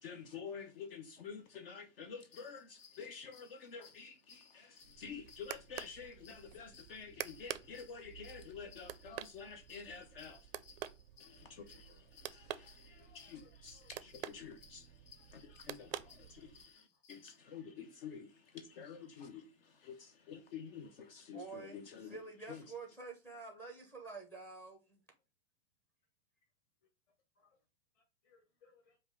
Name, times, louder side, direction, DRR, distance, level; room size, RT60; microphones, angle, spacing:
voice 1, 0.0-10.5 11.2-22.2 22.5-22.6, left 6 dB, 50° left, 0.7 m, -50 dB
sound 1, 2.2-17.4, left 6 dB, 85° left, 1.1 m, -62 dB
sound 2, 4.8-16.7, right 12 dB, 55° right, 0.4 m, -49 dB
voice 2, 13.0-13.9 15.2-15.6 16.0-16.3 27.4-27.6 27.9-29.0, left 4 dB, 25° left, 1.2 m, -69 dB
voice 3, 21.3-25.0, right 4 dB, 5° left, 0.6 m, -48 dB
5.2 x 2.4 x 3.3 m
hypercardioid pair, 150°, 36 cm